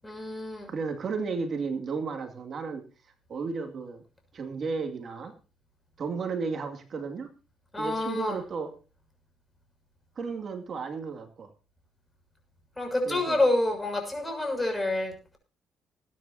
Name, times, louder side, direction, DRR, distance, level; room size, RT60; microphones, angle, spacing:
voice 1, 0.0-0.7 7.7-8.4 12.8-15.4, left 2 dB, 15° left, 4 dB, 6.5 m, -28 dB
voice 2, 0.7-2.8 3.3-4.0 4.3-5.3 6.0-7.3 7.8-8.7 10.2-11.5 13.1-13.4, right 5 dB, 50° right, 5 dB, 2.4 m, -33 dB
21.0 x 10.0 x 2.8 m, 0.36 s
cardioid pair, 90°, 0 cm